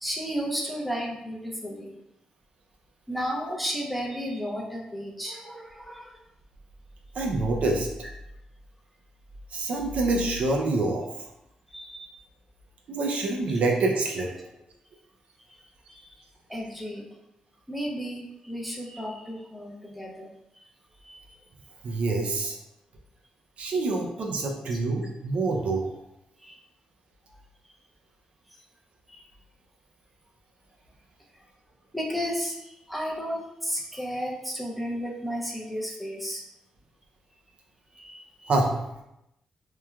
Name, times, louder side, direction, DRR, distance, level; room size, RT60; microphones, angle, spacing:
voice 1, 0.0-1.9 3.1-6.1 11.7-12.1 15.5-15.6 15.9-16.1 16.5-17.0 17.7-20.3 21.0-21.2 24.2-24.3 24.7-24.8 26.4-26.6 29.1-29.2 31.9-36.4 37.9-38.5, equal, ahead, -3 dB, 0.5 m, -33 dB
voice 2, 7.2-7.9 9.5-11.1 12.9-14.3 21.8-22.6 23.6-25.9 38.5-38.8, right 2 dB, 70° right, 0 dB, 0.4 m, -26 dB
3.0 x 2.2 x 2.3 m, 0.86 s
cardioid pair, 95°, 2 cm